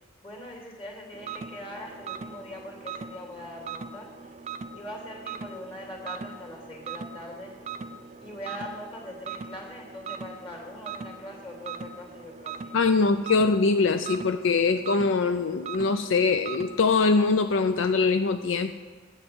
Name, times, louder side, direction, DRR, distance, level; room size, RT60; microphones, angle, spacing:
voice 1, 0.2-4.3 4.7-7.5 8.2-12.7, left 1 dB, 30° left, -1 dB, 2.7 m, -42 dB
sound 1, 1.1-16.8, right 5 dB, 35° right, 0.4 m, -40 dB
voice 2, 12.7-18.7, left 4 dB, 80° left, 9 dB, 0.4 m, -23 dB
8.8 x 7.2 x 7.9 m, 1.5 s
head